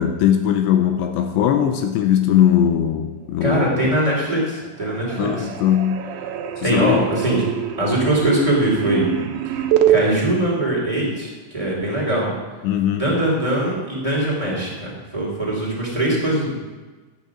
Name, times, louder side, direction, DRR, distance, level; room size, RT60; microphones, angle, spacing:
voice 1, 0.0-3.7 5.2-6.1 6.6-7.0 12.6-13.0, left 10 dB, 85° left, 7 dB, 2.7 m, -19 dB
voice 2, 3.4-5.5 6.6-7.4 7.8-9.1 9.9-12.3 12.9-16.5, right 1 dB, 10° right, -4 dB, 2.2 m, -21 dB
sound 1, 4.1-4.6 4.8-10.0, right 11 dB, 80° right, 3.2 m, -24 dB
13.0 x 8.9 x 6.0 m, 1.3 s
omnidirectional pair, 5.4 m